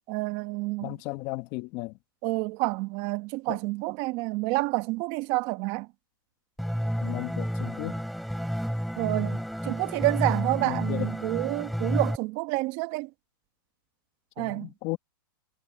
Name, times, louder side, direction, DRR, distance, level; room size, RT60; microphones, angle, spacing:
voice 1, 0.1-0.9 2.2-5.9 9.0-13.1 14.4-14.7, right 23 dB, 40° right, 1.4 m, -29 dB
voice 2, 0.8-1.9 3.5-3.6 7.0-8.0 10.6-11.1 14.4-15.0, left 22 dB, 40° left, 1.4 m, -35 dB
sound 1, 6.6-12.2, equal, ahead, 3.1 m, -30 dB
hypercardioid pair, 145°, 12 cm